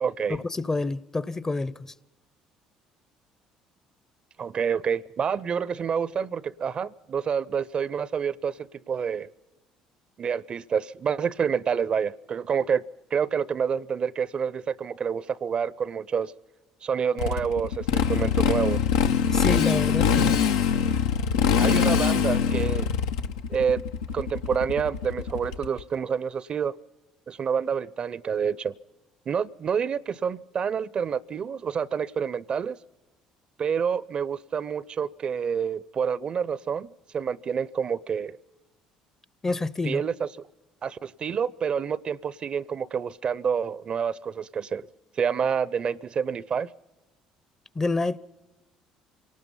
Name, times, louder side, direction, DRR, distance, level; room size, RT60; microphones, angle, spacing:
voice 1, 0.0-0.4 4.4-9.3 10.2-12.8 13.1-16.3 16.8-18.8 21.6-22.9 23.5-23.8 24.1-26.7 27.3-28.7 29.3-32.8 33.6-38.4 39.8-40.5 40.8-44.9 45.2-46.7, right 7 dB, 45° right, 0.6 m, -28 dB
voice 2, 0.5-1.9 19.3-20.4 39.4-40.0 47.8-48.2, left 3 dB, 20° left, 0.7 m, -28 dB
Motorcycle, 17.2-25.8, left 7 dB, 90° left, 0.8 m, -23 dB
26.5 x 18.5 x 5.4 m
hypercardioid pair, 65°, 2 cm